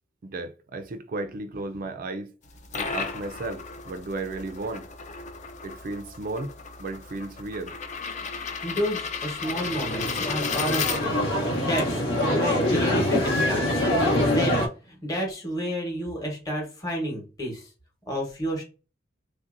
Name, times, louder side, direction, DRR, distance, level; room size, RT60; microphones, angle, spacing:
voice 1, 0.2-2.3 2.7-4.9 5.6-6.5 6.8-7.7, right 2 dB, 45° right, 0.4 m, -34 dB
sound 1, 2.4-11.4, left 5 dB, 40° left, 0.5 m, -34 dB
voice 2, 8.6-13.9 14.2-17.7 18.1-18.6, equal, 20° left, 1.1 m, -31 dB
sound 2, 9.4-14.7, left 1 dB, 75° left, 1.0 m, -24 dB
3.4 x 2.6 x 2.5 m
head